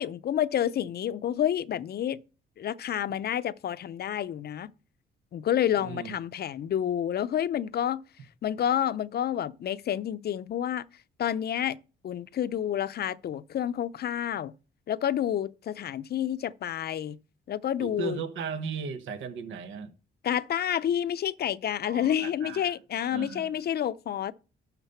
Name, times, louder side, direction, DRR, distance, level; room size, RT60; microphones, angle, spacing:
voice 1, 0.0-2.2 2.6-4.7 5.3-8.0 8.4-10.8 11.2-11.8 12.0-14.5 14.9-17.2 17.5-18.2 20.2-24.3, left 10 dB, 55° left, 0.6 m, -29 dB
voice 2, 5.8-6.2 17.8-19.9 21.8-22.8 23.1-23.5, right 6 dB, 75° right, 1.1 m, -36 dB
12.0 x 4.0 x 5.6 m
cardioid pair, 90°, 20 cm